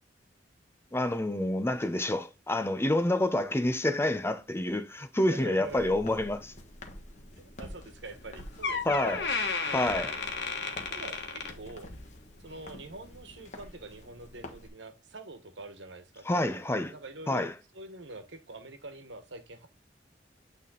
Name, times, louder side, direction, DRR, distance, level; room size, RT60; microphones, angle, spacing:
voice 1, 0.9-6.5 8.8-9.2 9.7-10.1 16.3-16.9 17.3-17.5, left 1 dB, 15° left, 0.7 m, -28 dB
voice 2, 5.3-6.0 7.4-9.3 9.9-10.2 10.9-11.9 12.4-17.5 17.7-19.7, right 2 dB, 80° right, 1.4 m, -45 dB
Walk footsteps, 5.6-14.7, left 1 dB, 40° left, 1.3 m, -48 dB
Door, 8.2-8.3 8.6-12.1 12.5-12.8 13.5-13.6, left 4 dB, 65° left, 1.4 m, -33 dB
9.0 x 3.6 x 3.9 m
head